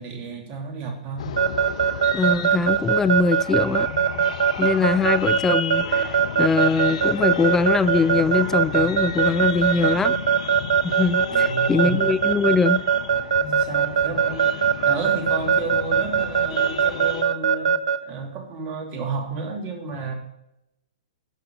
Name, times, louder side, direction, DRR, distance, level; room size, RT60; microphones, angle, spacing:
voice 1, 0.0-1.3 11.3-12.0 13.4-14.5 14.8-17.7 18.0-20.1, right 4 dB, 35° right, 2.9 m, -32 dB
sound 1, 1.2-17.2, left 9 dB, 60° left, 0.9 m, -34 dB
Keyboard (musical) / Alarm, 1.4-18.0, right 8 dB, 65° right, 0.9 m, -20 dB
voice 2, 2.1-3.9 4.6-10.2 10.8-12.8, left 4 dB, 10° left, 0.3 m, -22 dB
12.5 x 6.8 x 5.4 m
hypercardioid pair, 120°, 4 cm